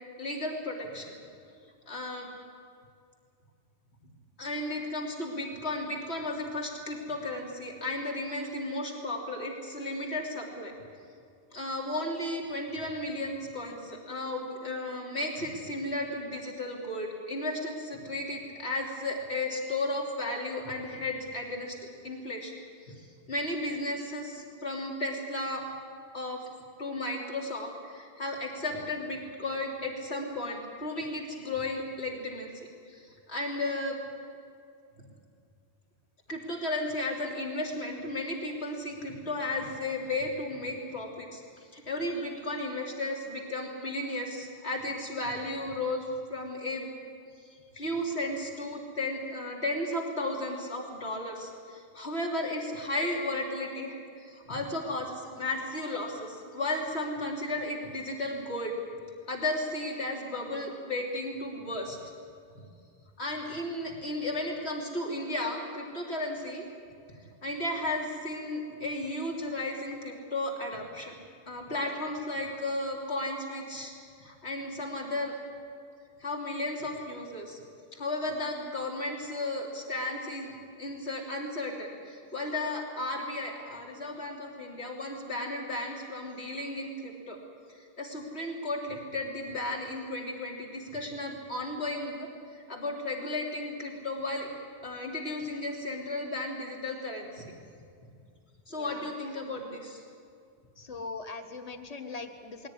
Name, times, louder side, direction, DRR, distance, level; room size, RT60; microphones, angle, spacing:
voice 1, 0.2-1.2 1.9-2.3 4.4-10.7 11.5-21.8 22.0-22.5 22.8-23.0 23.3-25.7 26.1-26.4 26.8-34.0 36.3-41.4 41.7-46.9 47.4-47.5 47.7-58.7 59.3-62.0 63.2-66.6 67.4-71.2 71.5-73.9 74.2-75.3 76.2-77.6 77.9-87.4 87.7-94.5 94.8-97.5 98.7-100.0, left 2 dB, 85° left, -1 dB, 3.5 m, -34 dB
voice 2, 100.8-102.7, left 3 dB, 35° left, 6 dB, 1.5 m, -40 dB
21.5 x 17.0 x 9.9 m, 2.4 s
omnidirectional pair, 1.1 m